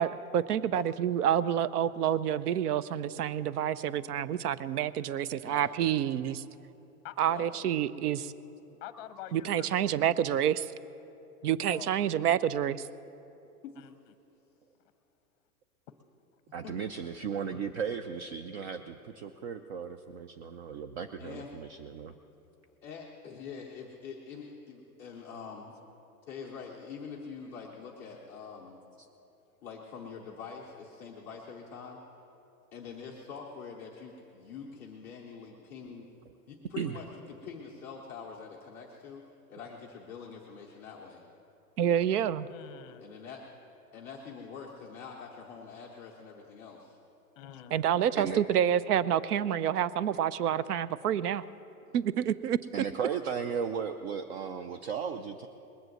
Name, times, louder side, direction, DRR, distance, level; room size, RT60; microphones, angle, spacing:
voice 1, 0.0-6.4 7.2-8.3 9.3-10.7 11.4-12.9 41.8-42.5 47.7-51.4 51.9-52.6, right 10 dB, 80° right, 16 dB, 0.7 m, -28 dB
voice 2, 5.3-5.9 7.3-7.5 13.6-13.7 16.6-16.7 21.2-21.5 22.8-25.8 26.3-28.8 29.6-32.0 32.7-36.1 36.5-39.2 39.5-41.2 43.0-43.4 43.9-47.0 50.0-50.2, left 6 dB, 5° left, -6 dB, 0.4 m, -45 dB
voice 3, 8.8-9.8 11.7-11.9 13.8-13.9 22.1-22.2 29.8-29.9 42.5-43.1 47.4-47.9, left 12 dB, 35° left, 11 dB, 0.7 m, -45 dB
voice 4, 16.5-22.1 36.8-37.0 48.1-48.4 52.7-55.5, right 7 dB, 45° right, 8 dB, 0.6 m, -36 dB
20.5 x 7.9 x 7.7 m, 2.9 s
hypercardioid pair, 150°, 46 cm